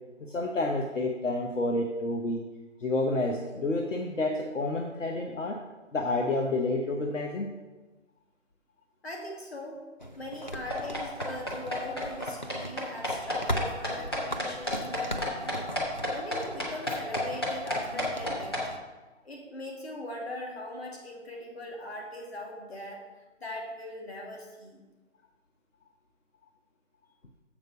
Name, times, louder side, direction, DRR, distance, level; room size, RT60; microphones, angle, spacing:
voice 1, 0.3-2.4 2.8-5.6 5.9-7.5, left 2 dB, 70° left, 1 dB, 1.2 m, -29 dB
voice 2, 9.0-9.8 10.2-15.7 16.1-18.6 19.2-23.0 23.4-24.8, left 1 dB, 55° left, -1 dB, 2.5 m, -40 dB
sound 1, 10.0-18.8, equal, 35° left, 0.5 m, -39 dB
sound 2, 10.7-18.6, left 1 dB, 20° left, 1.1 m, -31 dB
7.4 x 5.3 x 6.8 m, 1.2 s
hypercardioid pair, 180°, 38 cm